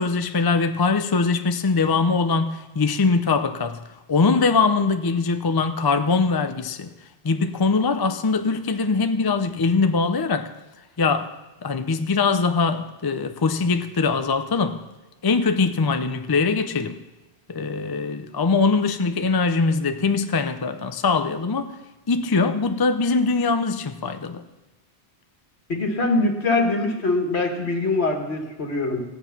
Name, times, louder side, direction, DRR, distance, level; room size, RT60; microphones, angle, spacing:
voice 1, 0.0-3.8 4.1-6.9 7.2-10.5 11.0-11.3 11.6-14.8 15.2-17.0 17.5-21.7 22.1-24.4, left 4 dB, 30° left, 0.5 m, -22 dB
voice 2, 25.7-29.0, left 2 dB, 70° left, 2.0 m, -23 dB
15.5 x 9.1 x 6.0 m
omnidirectional pair, 1.1 m